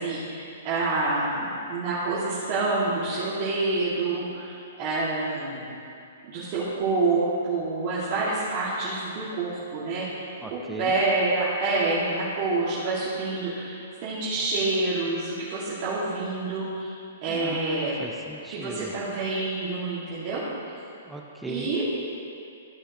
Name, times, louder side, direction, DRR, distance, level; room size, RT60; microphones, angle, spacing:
voice 1, 0.0-5.6 6.3-16.9 17.2-17.9 18.5-20.4 21.5-21.8, right 3 dB, 40° right, -11 dB, 2.3 m, -27 dB
voice 2, 10.4-10.9 17.3-18.9 21.1-21.8, right 2 dB, 5° right, 1 dB, 0.8 m, -38 dB
14.5 x 6.2 x 3.1 m, 2.6 s
hypercardioid pair, 140°, 0 cm